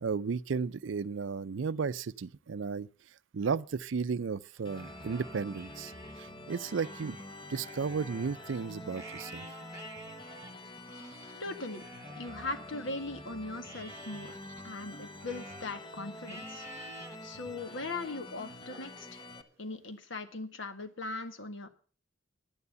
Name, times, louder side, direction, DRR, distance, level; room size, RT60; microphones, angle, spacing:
voice 1, 0.0-2.9 3.3-5.9 6.2-7.2 7.5-9.4, right 5 dB, 70° right, 0.5 m, -34 dB
sound 1, 4.6-19.4, left 1 dB, 25° left, 1.0 m, -47 dB
Livestock farm animals working animals, 4.6-6.2 6.6-13.2 13.6-15.7 16.2-17.2 17.7-18.1 18.7-19.8, right 1 dB, 15° right, 2.0 m, -51 dB
voice 2, 11.4-11.8 12.2-14.4 14.6-16.7 17.2-19.3 19.6-21.7, left 2 dB, 70° left, 1.7 m, -39 dB
10.5 x 9.7 x 6.8 m
head